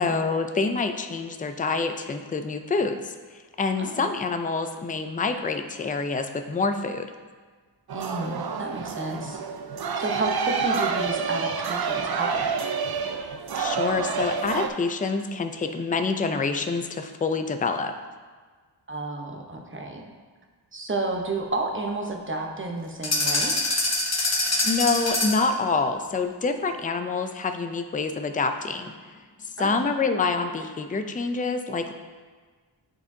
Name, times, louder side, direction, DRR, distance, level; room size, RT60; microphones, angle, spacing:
voice 1, 0.0-3.2 3.6-7.1 13.5-17.9 24.6-28.9 29.4-31.9, left 4 dB, 20° left, 7 dB, 0.4 m, -27 dB
voice 2, 7.9-9.4 10.0-12.5 18.9-20.1 20.7-23.6 29.6-29.8, right 2 dB, 25° right, 1 dB, 0.8 m, -31 dB
sound 1, 7.9-14.7, right 5 dB, 55° right, 0.5 m, -28 dB
sound 2, 23.0-25.5, left 2 dB, 35° left, 1.1 m, -24 dB
9.7 x 4.3 x 2.7 m, 1.5 s
wide cardioid pair, 70°, 44 cm